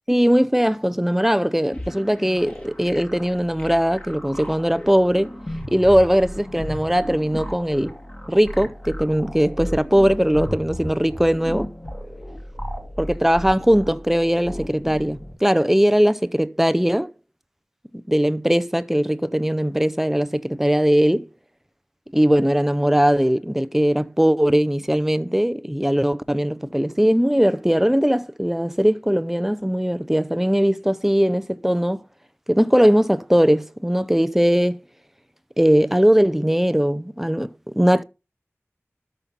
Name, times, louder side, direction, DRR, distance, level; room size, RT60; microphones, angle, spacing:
voice 1, 0.1-5.4 5.7-8.0 8.3-11.7 13.0-17.1 18.1-21.3 22.1-32.0 32.5-34.8 35.6-38.0, equal, 5° right, 0.6 m, -20 dB
sound 1, 1.7-15.3, equal, 25° left, 2.3 m, -34 dB
13.0 x 5.6 x 5.4 m
wide cardioid pair, 55°, 5 cm